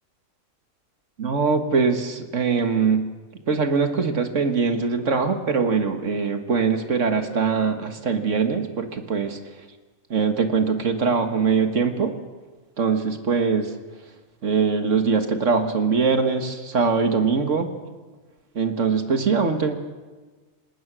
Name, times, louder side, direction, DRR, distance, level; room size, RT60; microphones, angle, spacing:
voice 1, 1.2-9.4 10.1-12.2 12.8-13.7 14.4-17.7 18.6-19.7, right 5 dB, 65° right, 7 dB, 1.9 m, -22 dB
28.5 x 19.5 x 6.2 m, 1.3 s
omnidirectional pair, 1.4 m